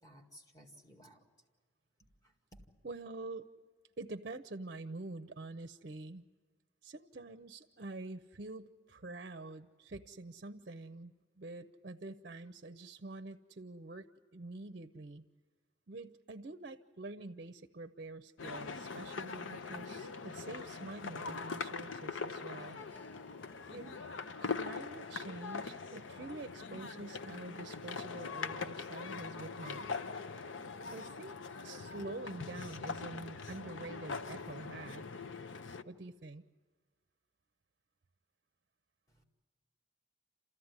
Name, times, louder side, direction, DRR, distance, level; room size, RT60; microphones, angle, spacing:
voice 1, 0.0-1.3 2.2-2.7 39.1-39.2, equal, 20° left, 0 dB, 2.1 m, -58 dB
voice 2, 2.8-3.5 4.0-6.2 6.8-14.1 14.3-15.2 15.9-22.8 23.7-24.0 24.4-30.0 30.9-31.4 31.6-35.0 35.8-36.4, right 2 dB, 50° right, 9 dB, 0.6 m, -46 dB
sound 1, 18.4-35.8, left 4 dB, 80° left, 0.7 m, -42 dB
Harp, 21.8-28.3, left 2 dB, 55° left, 1.0 m, -61 dB
29.0 x 14.5 x 9.7 m, 1.6 s
head